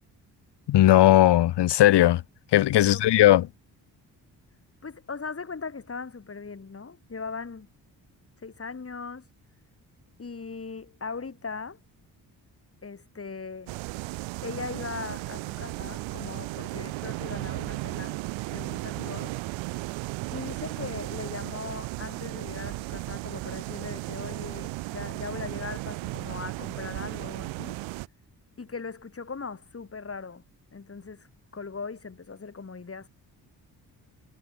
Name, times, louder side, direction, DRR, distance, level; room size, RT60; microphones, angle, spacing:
voice 1, 0.7-2.2 2.5-3.5, left 14 dB, 65° left, 1.0 m, -18 dB
voice 2, 2.8-3.5 4.8-7.7 8.4-9.2 10.2-11.8 12.8-13.7 14.4-18.1 18.5-19.4 20.3-27.8 28.6-30.4 30.7-31.3 31.5-33.1, left 4 dB, 30° left, 2.7 m, -39 dB
sound 1, 13.7-28.1, right 21 dB, 85° right, 1.3 m, -35 dB
supercardioid pair, 50°, 45 cm